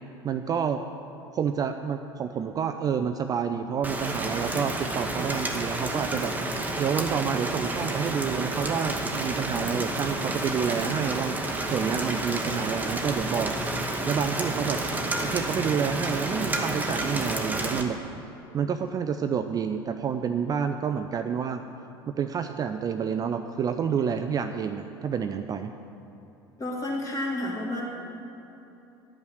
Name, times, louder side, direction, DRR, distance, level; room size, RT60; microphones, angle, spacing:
voice 1, 0.2-0.8 1.3-6.3 6.8-11.4 11.7-13.5 14.1-14.8 15.2-18.0 18.5-21.6 22.1-25.7, right 7 dB, 30° right, 8 dB, 0.4 m, -29 dB
Rain, 3.8-17.8, right 2 dB, 10° right, 0.9 m, -30 dB
voice 2, 26.6-27.8, left 1 dB, 25° left, -3 dB, 2.4 m, -30 dB
10.5 x 5.5 x 6.3 m, 3.0 s
hypercardioid pair, 70°, 13 cm